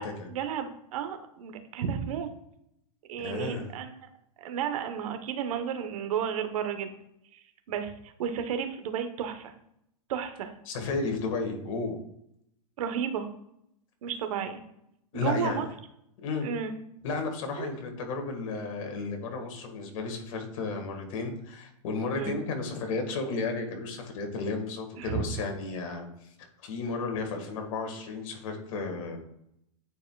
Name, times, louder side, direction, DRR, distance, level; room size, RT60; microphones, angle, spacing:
voice 1, 0.3-2.3 3.1-3.9 4.4-6.9 7.3-7.4 7.7-7.9 8.2-9.5 10.1-10.5 12.8-13.3 14.0-14.6 15.1-15.7 16.4-16.7 17.6-17.7 22.1-22.4 25.0-25.2, right 8 dB, 65° right, 8 dB, 1.0 m, -32 dB
voice 2, 3.2-3.7 10.7-12.0 15.1-15.6 16.2-16.5 17.0-26.1 26.6-29.2, left 3 dB, 60° left, 4 dB, 1.7 m, -33 dB
9.3 x 4.7 x 2.3 m, 0.77 s
hypercardioid pair, 125°, 19 cm